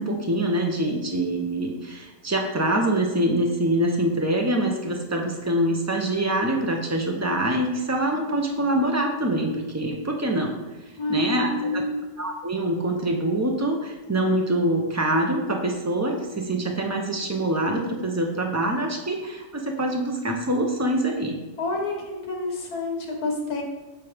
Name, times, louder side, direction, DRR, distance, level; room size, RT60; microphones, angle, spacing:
voice 1, 0.0-10.5 11.1-11.8 12.2-21.4, right 1 dB, 20° right, 1 dB, 0.4 m, -25 dB
voice 2, 11.0-12.0 21.6-23.6, left 2 dB, 80° left, 0 dB, 1.8 m, -28 dB
7.6 x 3.6 x 5.0 m, 1.2 s
omnidirectional pair, 1.6 m